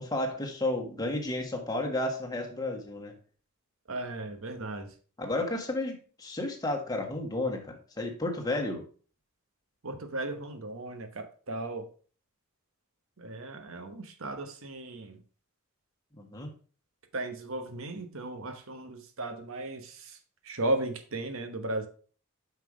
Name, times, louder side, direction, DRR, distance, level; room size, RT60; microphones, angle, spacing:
voice 1, 0.0-3.1 5.2-8.8 16.2-16.5, left 2 dB, 15° left, 0 dB, 1.5 m, -32 dB
voice 2, 3.9-4.9 9.8-11.9 13.2-15.2 17.1-20.0 20.5-21.9, right 2 dB, 60° right, 8 dB, 1.1 m, -35 dB
5.8 x 5.8 x 4.8 m, 0.40 s
head